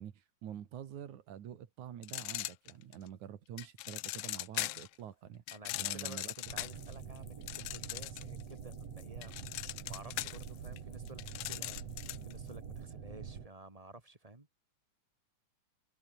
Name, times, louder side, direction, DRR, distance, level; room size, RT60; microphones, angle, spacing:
voice 1, 0.0-5.4 5.7-6.3, right 10 dB, 75° right, 3.3 m, -47 dB
sound 1, 2.0-3.1 3.6-4.9 5.5-8.4 8.7-12.3, left 17 dB, 90° left, 1.3 m, -40 dB
voice 2, 5.5-9.3 9.7-11.8 12.2-14.5, right 2 dB, 15° right, 1.8 m, -52 dB
sound 2, 6.5-13.5, right 7 dB, 55° right, 3.7 m, -46 dB
omnidirectional pair, 3.5 m